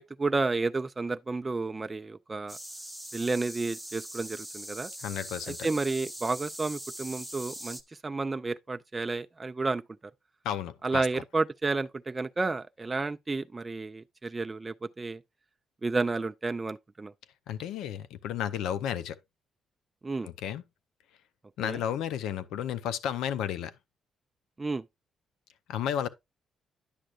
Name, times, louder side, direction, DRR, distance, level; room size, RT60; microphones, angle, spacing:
voice 1, 0.0-2.6 3.1-4.9 5.6-9.8 10.8-15.2 15.8-17.1 20.0-20.3 21.6-21.8 24.6-24.8, right 3 dB, 25° right, 0.4 m, -31 dB
sound 1, 2.5-7.8, right 1 dB, ahead, 1.0 m, -42 dB
voice 2, 5.0-5.6 10.4-11.2 17.5-19.2 20.2-20.6 21.6-23.7 25.7-26.1, left 9 dB, 85° left, 0.6 m, -32 dB
10.0 x 6.4 x 2.4 m
cardioid pair, 90°, 0 cm